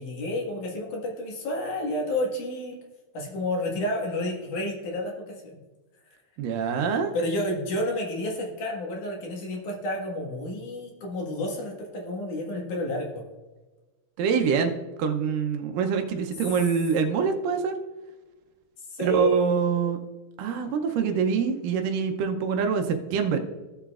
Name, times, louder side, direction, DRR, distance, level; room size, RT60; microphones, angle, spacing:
voice 1, 0.0-2.8 3.1-5.6 7.1-13.2 18.9-19.6, left 1 dB, 60° left, -1 dB, 2.9 m, -30 dB
voice 2, 6.4-7.1 14.2-14.7 15.0-17.7 19.0-20.0 20.4-23.4, right 6 dB, 75° right, 5 dB, 2.2 m, -25 dB
14.5 x 7.1 x 2.4 m, 1.2 s
omnidirectional pair, 4.2 m